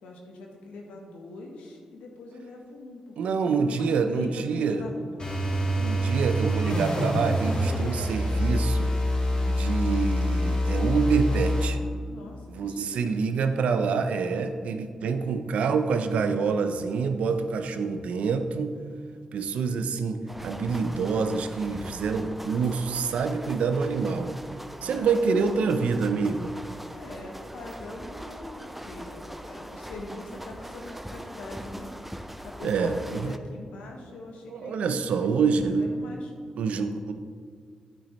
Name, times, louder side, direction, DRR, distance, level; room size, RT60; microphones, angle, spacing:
voice 1, 0.0-5.2 12.0-13.3 24.7-25.9 26.9-36.3, left 2 dB, 85° left, 1 dB, 1.2 m, -43 dB
voice 2, 3.2-4.8 5.8-8.9 9.5-11.8 12.5-18.8 19.3-24.3 24.8-26.6 32.6-33.3 34.5-35.9 36.6-37.1, right 5 dB, 80° right, 8 dB, 0.6 m, -26 dB
sound 1, 5.2-11.8, equal, 45° left, 2.3 m, -26 dB
sound 2, 20.3-33.4, equal, 10° right, 0.6 m, -41 dB
9.0 x 8.9 x 3.2 m, 2.1 s
supercardioid pair, 45°, 2 cm